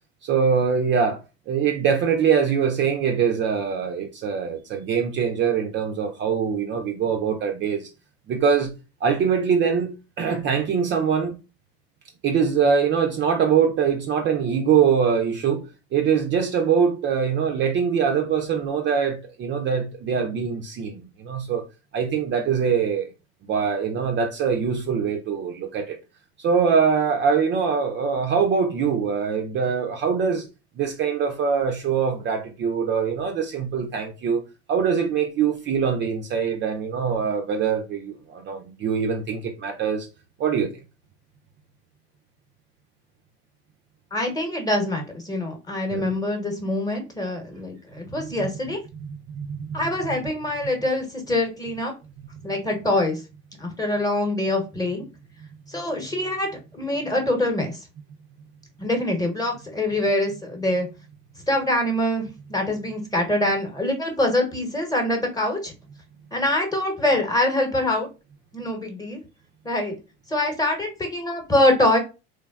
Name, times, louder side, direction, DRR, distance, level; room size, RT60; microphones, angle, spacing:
voice 1, 0.2-1.2 1.5-7.9 8.3-8.7 9.0-11.4 12.2-21.6 21.9-23.1 23.4-26.0 26.4-30.5 30.8-34.4 34.7-40.1 40.4-40.7 45.9-46.1 48.2-48.5 49.0-49.8, right 6 dB, 35° right, 0.4 m, -23 dB
voice 2, 44.1-48.8 49.7-51.9 52.4-53.2 53.6-55.0 55.7-57.8 58.8-60.9 61.5-65.7 66.3-68.1 68.5-69.2 69.6-70.0 70.3-72.0, left 1 dB, 10° left, 0.9 m, -24 dB
3.2 x 2.2 x 2.3 m
hypercardioid pair, 85°, 32 cm